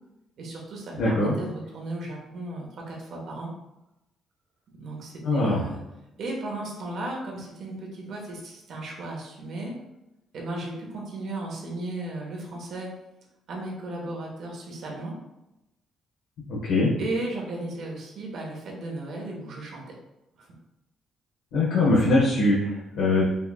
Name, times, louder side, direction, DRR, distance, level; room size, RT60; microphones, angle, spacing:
voice 1, 0.4-3.5 4.7-5.8 6.2-9.7 10.3-12.9 13.5-15.1 17.0-19.8 20.4-20.5, right 2 dB, 70° right, -1 dB, 1.1 m, -35 dB
voice 2, 1.0-1.3 5.2-5.6 16.5-16.9 21.5-23.2, left 2 dB, 90° left, -7 dB, 0.9 m, -22 dB
5.2 x 2.5 x 2.2 m, 0.93 s
cardioid pair, 90°, 0 cm